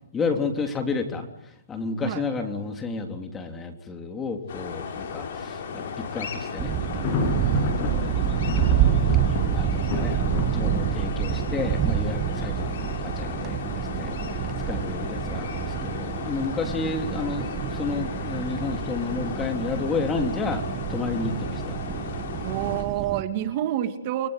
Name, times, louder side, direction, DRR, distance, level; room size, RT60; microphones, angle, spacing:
voice 1, 0.1-7.4 7.8-8.1 9.4-14.4 14.7-20.6 20.9-21.8, left 4 dB, 15° left, 5 dB, 3.5 m, -31 dB
sound 1, 4.5-22.8, left 6 dB, 55° left, 7.1 m, -35 dB
sound 2, 6.6-23.2, right 11 dB, 20° right, 1.5 m, -28 dB
Thunder, 6.9-12.7, left 4 dB, 30° left, 7.2 m, -31 dB
voice 2, 22.4-24.3, right 12 dB, 35° right, 8 dB, 2.5 m, -28 dB
29.5 x 24.0 x 8.4 m, 0.77 s
hypercardioid pair, 160°, 0 cm